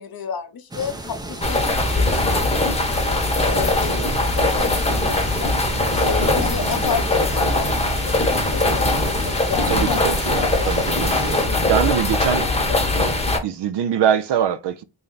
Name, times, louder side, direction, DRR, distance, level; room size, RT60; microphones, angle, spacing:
voice 1, 0.0-2.6 2.9-7.7 8.0-10.0 10.3-10.7 11.2-12.8, left 7 dB, 45° left, 0.8 m, -32 dB
sound 1, 0.7-11.5, right 1 dB, 10° right, 0.5 m, -34 dB
sound 2, 1.4-13.4, left 2 dB, 15° left, 0.9 m, -21 dB
voice 2, 3.7-4.1 6.0-6.7 9.7-11.4 11.7-12.4 13.4-14.8, right 9 dB, 60° right, 0.5 m, -24 dB
3.3 x 2.7 x 3.7 m
cardioid pair, 100°, 49 cm